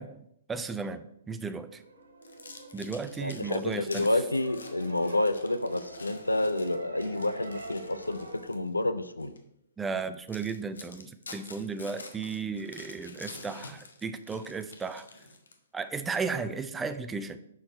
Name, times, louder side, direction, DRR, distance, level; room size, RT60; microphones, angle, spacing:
voice 1, 0.0-1.8 2.7-4.1 9.8-15.1 15.7-17.4, right 5 dB, 10° right, 10 dB, 0.4 m, -35 dB
sound 1, 1.4-8.5, right 2 dB, 75° right, 1.7 m, -46 dB
sound 2, 2.2-8.7 9.2-9.4 9.9-10.0 10.3-15.8, left 3 dB, 75° left, 1.0 m, -48 dB
voice 2, 3.2-9.3, left 2 dB, 90° left, 12 dB, 0.5 m, -29 dB
6.3 x 4.6 x 4.3 m, 0.78 s
figure-of-eight pair, 120°, 0 cm